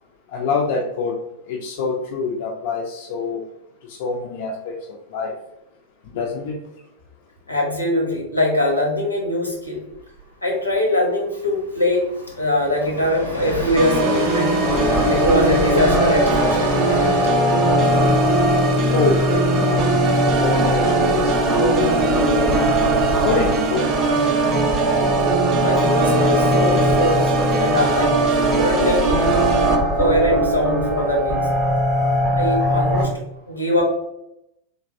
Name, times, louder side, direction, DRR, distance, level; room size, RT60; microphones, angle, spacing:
voice 1, 0.3-1.2 1.5-3.4 3.9-5.3 6.1-6.6 18.9-20.0 20.4-22.5 23.2-23.9, left 4 dB, 50° left, 0 dB, 0.4 m, -25 dB
voice 2, 7.5-9.8 10.4-12.0 12.4-14.6 15.1-16.6 25.6-28.1 28.6-29.3 29.9-31.5 32.3-33.1 33.5-33.8, left 1 dB, 85° left, -1 dB, 0.8 m, -22 dB
Train, 9.9-10.2 10.5-10.6 11.0-21.2, right 1 dB, 90° right, 0.7 m, -33 dB
Organ, 13.8-29.8, right 3 dB, 35° right, 0.4 m, -21 dB
sound 1, 14.6-33.1, equal, 5° left, 0.7 m, -21 dB
3.2 x 2.5 x 2.5 m, 0.84 s
figure-of-eight pair, 90°, 0 cm